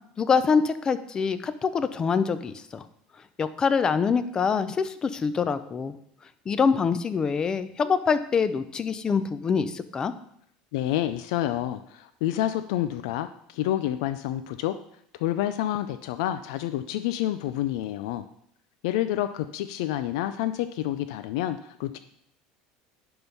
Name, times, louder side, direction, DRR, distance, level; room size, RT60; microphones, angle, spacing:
voice 1, 0.2-2.8 3.4-5.9 6.5-10.1, left 5 dB, 25° left, 12 dB, 0.5 m, -25 dB
voice 2, 10.7-14.8 15.2-18.2 18.8-22.0, left 13 dB, 80° left, 10 dB, 0.4 m, -28 dB
10.5 x 3.7 x 5.4 m, 0.71 s
supercardioid pair, 135°, 3 cm